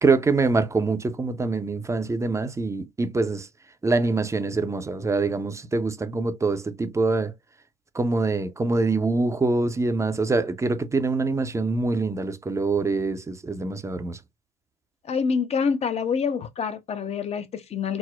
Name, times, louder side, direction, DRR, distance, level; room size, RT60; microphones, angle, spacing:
voice 1, 0.0-3.5 3.8-7.3 7.9-14.2, right 3 dB, 15° right, 0.6 m, -24 dB
voice 2, 15.1-18.0, left 6 dB, 35° left, 0.7 m, -26 dB
4.1 x 2.0 x 2.3 m
hypercardioid pair, 65°, 19 cm